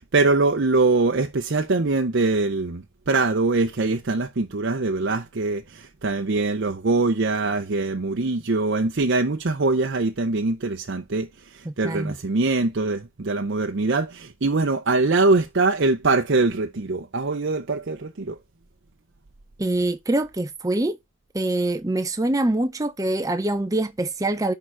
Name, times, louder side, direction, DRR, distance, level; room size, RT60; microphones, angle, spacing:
voice 1, 0.0-18.4, right 3 dB, 55° right, 0.7 m, -23 dB
voice 2, 11.6-12.2 19.6-21.0 21.3-24.5, right 1 dB, 15° right, 0.5 m, -24 dB
11.0 x 3.9 x 4.4 m
head